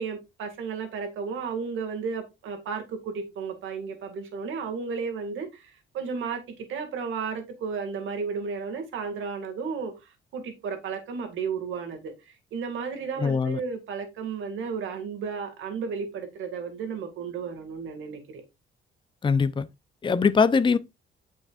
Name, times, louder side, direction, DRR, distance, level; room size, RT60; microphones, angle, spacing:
voice 1, 0.0-9.9 10.3-18.4, right 5 dB, 80° right, 2.2 m, -33 dB
voice 2, 13.2-13.6 19.2-19.7 20.0-20.8, left 5 dB, 25° left, 0.6 m, -22 dB
9.0 x 6.3 x 2.5 m
cardioid pair, 90°, 20 cm